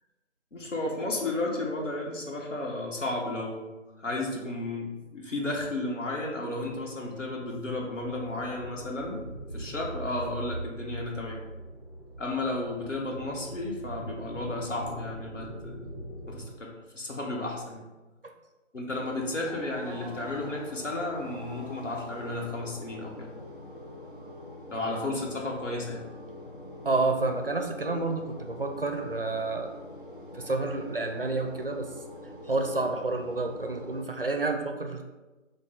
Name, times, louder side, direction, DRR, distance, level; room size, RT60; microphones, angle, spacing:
voice 1, 0.5-9.2 9.5-11.4 12.2-15.8 16.3-17.9 18.7-23.3 24.7-26.0 26.5-26.7, left 2 dB, 70° left, -1 dB, 1.2 m, -33 dB
sound 1, 6.7-16.5, right 1 dB, ahead, 0.6 m, -42 dB
sound 2, 18.9-34.1, left 1 dB, 45° left, 0.5 m, -44 dB
voice 2, 26.8-29.7 30.3-31.9 32.5-35.0, right 3 dB, 50° right, 4 dB, 0.5 m, -29 dB
6.2 x 2.2 x 3.4 m, 1.2 s
figure-of-eight pair, 160°, 38 cm